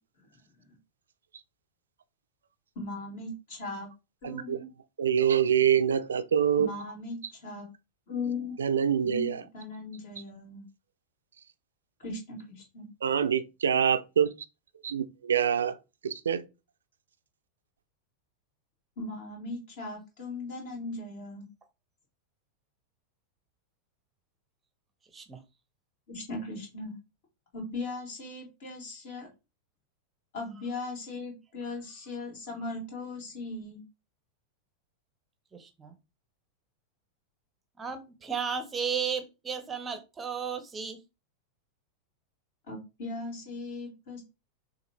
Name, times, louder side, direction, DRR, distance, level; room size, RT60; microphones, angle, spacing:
voice 1, 2.8-3.9 4.2-4.7 6.6-7.7 8.1-8.5 9.0-10.6 12.0-12.9 19.0-21.5 26.1-27.0 27.5-29.3 30.3-33.8 42.7-44.2, left 2 dB, 50° left, 2.2 m, -38 dB
voice 2, 4.2-4.6 5.0-6.7 8.6-9.4 13.0-14.3 14.8-15.8 16.0-16.4, right 8 dB, 70° right, 0.4 m, -25 dB
voice 3, 35.5-35.9 37.8-41.0, right 6 dB, 20° right, 0.7 m, -34 dB
6.3 x 2.4 x 3.0 m
figure-of-eight pair, 90°, 0 cm